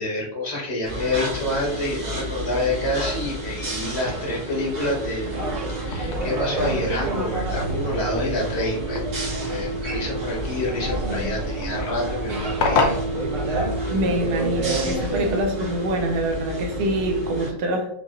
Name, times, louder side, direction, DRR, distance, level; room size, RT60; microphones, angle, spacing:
voice 1, 0.0-5.3 5.7-12.9, left 1 dB, 40° left, -3 dB, 1.3 m, -28 dB
sound 1, 0.8-17.5, right 1 dB, 90° right, 2.6 m, -31 dB
sound 2, 5.2-15.4, right 2 dB, 50° right, 0.9 m, -29 dB
sound 3, 5.3-14.0, left 4 dB, 70° left, 1.2 m, -32 dB
voice 2, 13.9-18.0, right 1 dB, 70° right, 4 dB, 1.2 m, -25 dB
5.6 x 2.9 x 2.4 m, 0.77 s
omnidirectional pair, 1.9 m